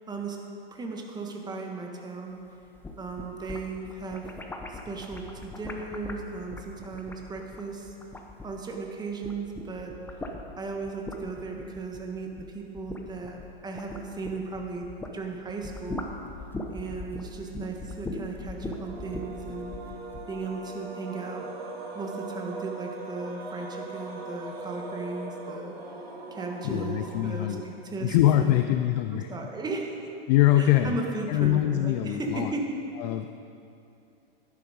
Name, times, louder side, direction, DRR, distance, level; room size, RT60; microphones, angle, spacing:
voice 1, 0.1-0.4 0.7-2.4 3.0-4.2 4.7-7.9 8.4-9.9 10.6-14.9 15.1-16.1 16.7-19.8 20.3-21.5 21.9-25.7 26.3-28.6 29.1-29.9 30.6-32.7, right 3 dB, 15° right, 2 dB, 1.4 m, -36 dB
sound 1, 2.6-8.8 9.1-15.2 15.5-20.3, left 2 dB, 5° left, 0.8 m, -40 dB
sound 2, 18.6-28.0, right 3 dB, 75° right, 1.8 m, -40 dB
voice 2, 26.6-27.6 28.0-29.3 30.3-31.0 31.3-32.5 33.0-33.3, left 13 dB, 45° left, 9 dB, 0.5 m, -23 dB
12.0 x 11.0 x 5.1 m, 2.7 s
hypercardioid pair, 125°, 30 cm